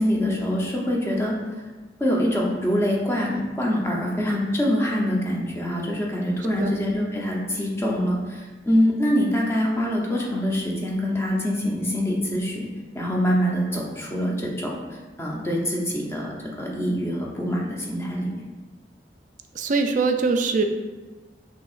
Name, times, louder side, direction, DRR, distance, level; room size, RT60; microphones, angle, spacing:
voice 1, 0.0-1.3 2.0-12.7 12.9-18.3, equal, 15° left, -2 dB, 0.7 m, -24 dB
voice 2, 19.5-20.6, right 4 dB, 45° right, 6 dB, 0.4 m, -22 dB
6.1 x 2.8 x 2.4 m, 1.3 s
head